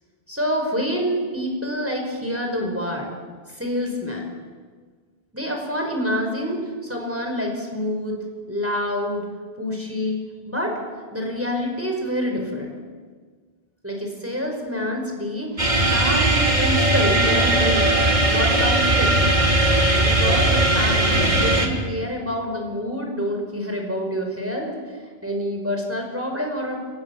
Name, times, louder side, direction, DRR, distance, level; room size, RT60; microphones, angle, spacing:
voice 1, 0.3-3.1 3.5-4.3 5.3-8.2 8.5-9.3 9.6-10.2 10.4-10.8 11.1-12.8 13.8-15.7 15.9-17.9 18.3-19.2 20.0-24.7 25.2-26.8, equal, 15° right, 1 dB, 5.4 m, -27 dB
sound 1, 15.6-21.7, right 1 dB, 45° right, 3.4 m, -19 dB
30.0 x 26.0 x 7.2 m, 1.5 s
omnidirectional pair, 1.0 m